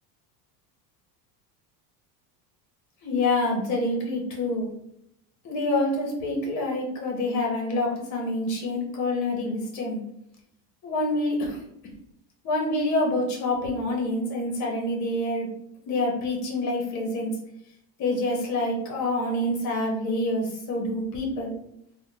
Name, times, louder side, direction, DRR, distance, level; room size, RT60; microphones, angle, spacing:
voice 1, 3.0-4.7 5.4-10.0 10.8-11.6 12.4-15.5 15.9-17.3 18.0-21.5, left 1 dB, 35° left, 0 dB, 0.8 m, -27 dB
3.3 x 2.1 x 2.7 m, 0.77 s
supercardioid pair, 155°, 49 cm